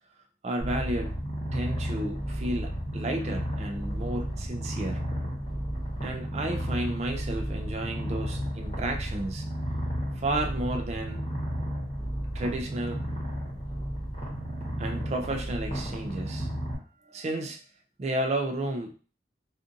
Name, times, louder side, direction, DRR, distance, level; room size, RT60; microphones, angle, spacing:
voice 1, 0.4-1.2 1.5-5.0 6.0-9.5 10.2-11.2 12.3-13.0 14.8-16.5 17.1-17.7 18.0-18.9, right 1 dB, 35° right, 0.3 m, -32 dB
Purr, 0.6-16.8, equal, 35° left, 1.0 m, -33 dB
2.5 x 2.4 x 2.5 m
head